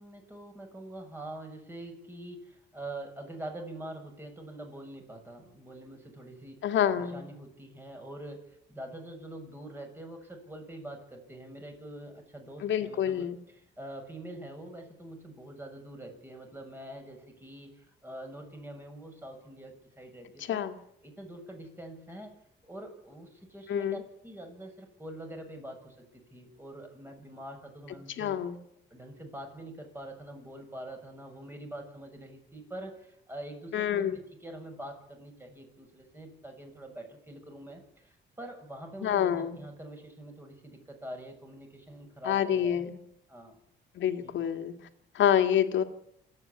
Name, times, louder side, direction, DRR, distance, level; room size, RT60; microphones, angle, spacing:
voice 1, 0.0-20.7 21.0-22.3 22.6-28.4 28.9-42.9 43.3-43.6 44.2-44.3, right 1 dB, 10° right, 3 dB, 6.9 m, -45 dB
voice 2, 6.6-7.2 12.6-13.4 20.5-20.8 23.7-24.0 28.2-28.6 33.7-34.2 39.0-39.6 42.2-43.0 43.9-44.7 45.1-45.8, left 9 dB, 70° left, 7 dB, 2.3 m, -27 dB
27.0 x 9.7 x 9.9 m, 0.74 s
cardioid pair, 90°, 20 cm